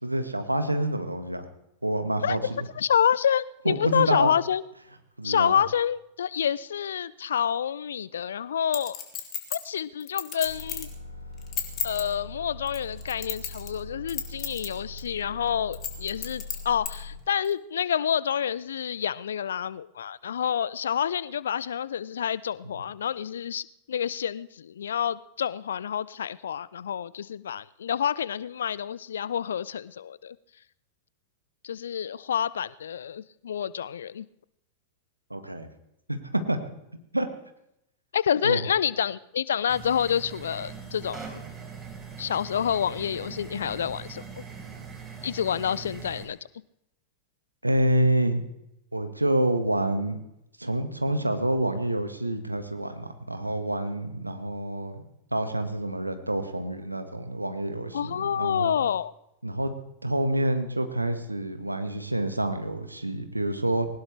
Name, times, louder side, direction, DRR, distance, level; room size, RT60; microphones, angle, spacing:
voice 1, 0.0-1.4 1.8-2.7 3.6-4.3 5.2-5.6 22.6-22.8 35.3-35.7 36.1-36.6 37.1-37.3 38.4-38.6 47.6-48.4 48.9-50.2 50.6-55.0 55.3-58.8 59.4-59.7 60.0-63.9, right 1 dB, 85° right, 8 dB, 1.6 m, -27 dB
voice 2, 2.8-4.6 5.2-9.0 9.5-10.9 11.8-30.4 31.6-34.3 38.1-41.3 42.2-44.2 45.2-46.4 57.9-59.1, left 8 dB, 65° left, 21 dB, 0.5 m, -28 dB
Chink clink, 8.7-10.9 11.4-12.0 12.7-13.8 14.1-14.7 15.0-15.1 15.7-16.9 17.5-17.6, left 10 dB, 35° left, 3.0 m, -32 dB
sound 1, 10.4-17.2, left 2 dB, 85° left, 2.2 m, -41 dB
sound 2, 39.7-46.3, right 6 dB, 20° right, 4.5 m, -41 dB
21.0 x 19.0 x 3.3 m, 0.83 s
figure-of-eight pair, 90°, 0 cm